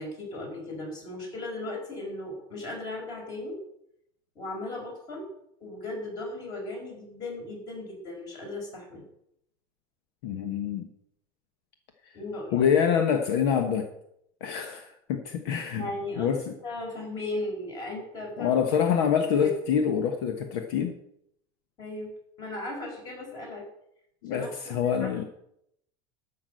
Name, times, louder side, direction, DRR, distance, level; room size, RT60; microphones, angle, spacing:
voice 1, 0.0-3.6 4.3-5.2 5.6-9.0 12.1-12.6 15.7-16.4 16.6-18.5 19.4-19.5 21.8-22.1 22.4-23.6 24.3-25.3, left 2 dB, 30° left, 0 dB, 5.1 m, -37 dB
voice 2, 10.2-10.9 12.5-13.9 14.4-15.9 16.2-16.5 18.4-20.9 24.2-25.2, left 7 dB, 65° left, 6 dB, 1.2 m, -26 dB
13.0 x 6.1 x 7.7 m, 0.76 s
supercardioid pair, 165°, 14 cm